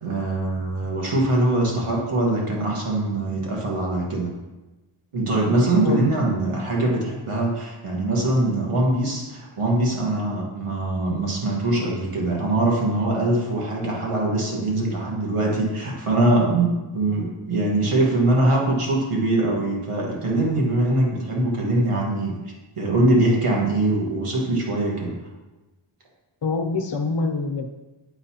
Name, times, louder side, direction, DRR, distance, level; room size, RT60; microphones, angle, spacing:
voice 1, 0.0-4.3 5.1-22.3 22.8-25.1, right 2 dB, 90° right, -2 dB, 1.6 m, -22 dB
voice 2, 26.4-27.7, left 3 dB, 55° left, 5 dB, 0.9 m, -25 dB
8.9 x 6.4 x 2.8 m, 1.1 s
wide cardioid pair, 80°, 50 cm